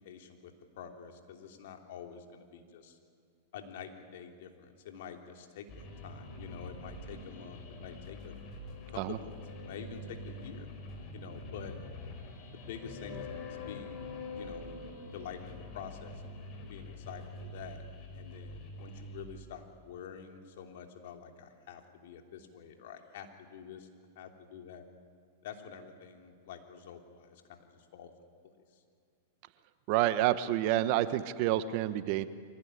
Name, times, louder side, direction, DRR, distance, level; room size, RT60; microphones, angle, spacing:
voice 1, 0.0-3.0 3.5-8.4 8.9-10.7 11.1-11.8 12.5-14.1 14.3-14.8 15.1-17.8 18.1-23.9 24.1-24.8 25.4-28.1 28.4-28.5, left 7 dB, 65° left, 4 dB, 3.2 m, -47 dB
sound 1, 5.7-19.2, left 2 dB, 40° left, 5.1 m, -45 dB
voice 2, 29.9-32.3, right 13 dB, 50° right, 13 dB, 1.2 m, -28 dB
24.5 x 18.0 x 9.9 m, 2.3 s
hypercardioid pair, 120°, 0 cm